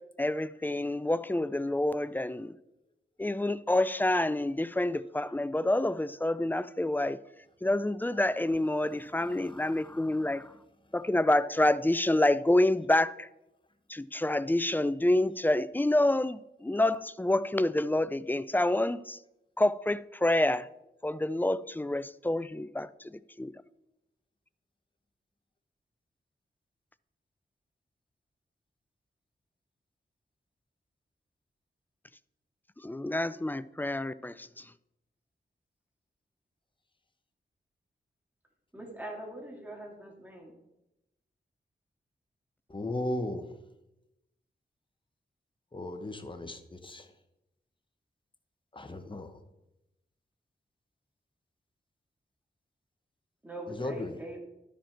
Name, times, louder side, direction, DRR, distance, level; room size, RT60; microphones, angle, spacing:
voice 1, 0.2-2.5 3.2-7.2 7.6-10.5 10.9-13.3 13.9-19.2 19.6-20.7 21.0-23.5 32.8-34.7, left 1 dB, 10° left, 0.3 m, -28 dB
voice 2, 38.7-40.6 53.4-54.4, right 1 dB, 10° right, 2.4 m, -42 dB
voice 3, 42.7-43.4 45.7-47.0 48.7-49.3 53.8-54.1, left 1 dB, 25° left, 1.0 m, -35 dB
12.5 x 5.1 x 4.4 m
wide cardioid pair, 80°, 20 cm